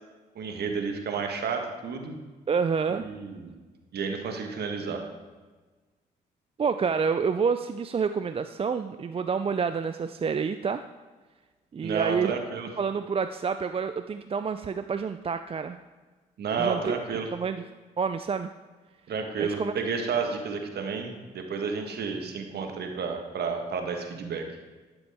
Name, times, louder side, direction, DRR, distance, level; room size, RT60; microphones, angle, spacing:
voice 1, 0.3-2.1 2.9-3.5 3.9-5.0 11.8-12.7 16.4-17.3 19.1-24.4, right 5 dB, 60° right, 4 dB, 1.4 m, -31 dB
voice 2, 2.5-3.1 6.6-10.8 11.7-12.3 12.8-15.8 16.6-17.0 17.3-17.6 18.0-18.5 19.4-19.7, right 6 dB, 30° right, 10 dB, 0.4 m, -28 dB
11.5 x 6.9 x 3.5 m, 1.3 s
hypercardioid pair, 50°, 19 cm